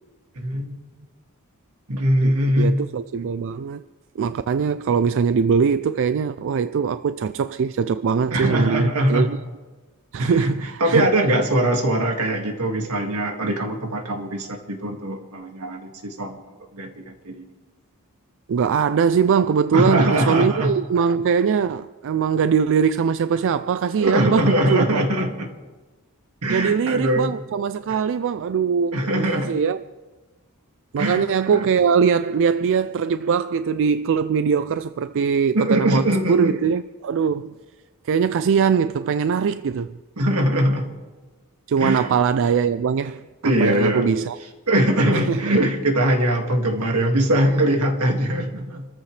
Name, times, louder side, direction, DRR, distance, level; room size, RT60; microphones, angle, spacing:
voice 1, 0.4-0.8 1.9-2.8 8.3-9.3 10.2-10.5 10.8-16.4 16.7-17.5 19.7-20.7 24.0-25.5 26.4-27.4 28.9-29.5 31.0-31.2 31.5-31.6 35.5-36.6 40.2-40.9 41.8-42.1 43.4-44.1 44.7-48.9, right 1 dB, 90° right, 2.2 m, -21 dB
voice 2, 2.6-3.8 4.2-9.4 10.1-11.1 18.5-25.0 26.5-29.8 30.9-37.5 38.0-39.9 41.7-43.2 43.6-44.4 45.1-45.5, right 6 dB, 60° right, 0.4 m, -21 dB
27.0 x 14.0 x 3.3 m
head